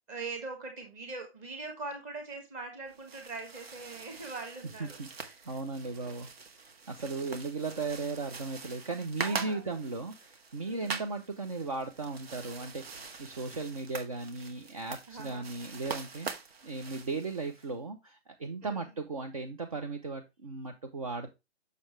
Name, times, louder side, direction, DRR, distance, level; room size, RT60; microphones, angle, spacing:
voice 1, 0.1-5.0 9.2-9.6 10.6-11.0 15.1-15.4 18.6-18.9, right 3 dB, 10° right, 3 dB, 1.3 m, -41 dB
sound 1, 2.9-17.7, right 4 dB, 65° right, 1.8 m, -44 dB
voice 2, 4.6-6.3 6.6-16.3 16.6-21.3, right 3 dB, 30° right, 4 dB, 0.8 m, -37 dB
7.0 x 6.6 x 3.2 m, 0.23 s
hypercardioid pair, 170°, 33 cm